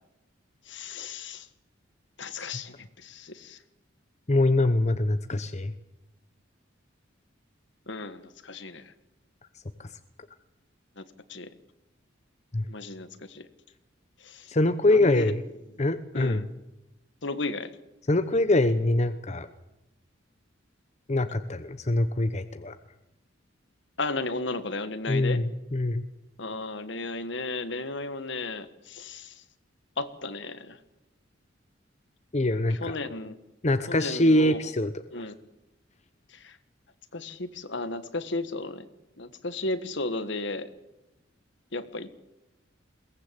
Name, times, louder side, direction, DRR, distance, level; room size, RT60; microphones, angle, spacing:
voice 1, 0.7-1.5 2.2-3.6 7.9-8.8 11.0-11.1 11.3-11.5 12.7-13.5 14.2-14.5 14.9-15.3 16.1-16.4 17.2-17.7 24.0-25.4 26.4-29.3 30.0-30.8 32.8-33.3 33.9-34.6 35.1-35.3 36.3-36.6 37.1-38.8 39.2-40.7 41.7-42.2, left 3 dB, 65° left, 12 dB, 1.5 m, -34 dB
voice 2, 4.3-5.7 9.8-9.9 12.5-12.7 14.5-15.4 15.8-16.4 18.1-19.5 21.1-22.7 25.1-26.0 32.3-33.0 33.6-34.9 35.2-35.3, left 1 dB, 35° left, 10 dB, 0.9 m, -24 dB
22.0 x 18.5 x 8.3 m, 0.97 s
head